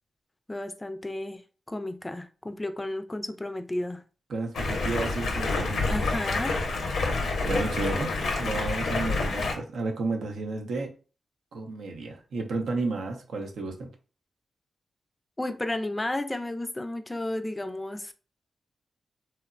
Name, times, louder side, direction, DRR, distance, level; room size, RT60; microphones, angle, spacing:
voice 1, 0.5-1.4 1.7-4.0 5.9-6.6 15.4-18.1, left 1 dB, 20° left, 0.3 m, -32 dB
voice 2, 4.3-5.9 7.4-8.1 8.4-10.9 11.5-13.9, right 3 dB, 80° right, 0.5 m, -32 dB
Stream, 4.5-9.6, left 3 dB, 75° left, 0.5 m, -28 dB
2.8 x 2.0 x 2.4 m
supercardioid pair, 45°, 0 cm